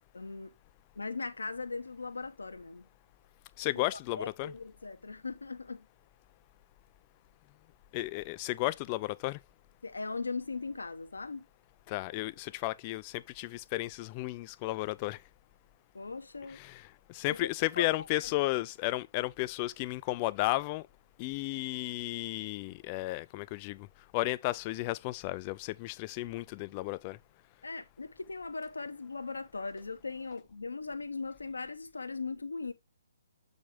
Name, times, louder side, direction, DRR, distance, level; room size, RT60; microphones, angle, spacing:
voice 1, 0.1-0.6 0.9-2.9 3.7-3.8 4.1-5.8 9.8-11.5 15.9-16.6 17.3-17.5 17.8-18.3 27.6-32.7, left 4 dB, 80° left, 0.9 m, -39 dB
voice 2, 3.6-4.5 7.9-9.4 11.9-15.2 16.6-16.7 17.1-20.9 21.2-23.9 24.1-27.2, left 19 dB, 30° left, 0.4 m, -33 dB
7.2 x 5.3 x 3.3 m
figure-of-eight pair, 135°, 0 cm